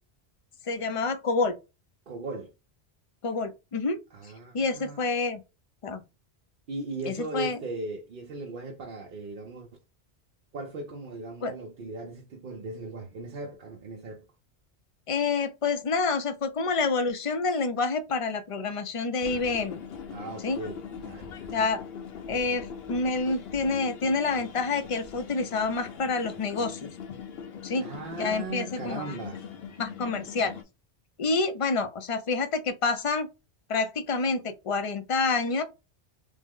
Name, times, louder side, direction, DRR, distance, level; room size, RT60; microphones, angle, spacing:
voice 1, 0.7-1.6 3.2-4.0 4.5-5.4 5.8-6.0 7.1-7.6 11.4-11.5 15.1-19.8 20.4-20.6 21.5-21.8 22.3-26.9 27.6-27.8 28.2-29.1 29.8-30.5 31.2-33.3 33.7-35.6, left 4 dB, 45° left, 0.4 m, -28 dB
voice 2, 2.1-2.5 4.1-5.0 6.7-9.7 10.5-14.3 20.1-21.5 27.8-29.4, right 3 dB, 55° right, 0.8 m, -38 dB
sound 1, 19.2-30.6, left 7 dB, 65° left, 0.8 m, -41 dB
3.5 x 2.0 x 3.6 m
omnidirectional pair, 1.1 m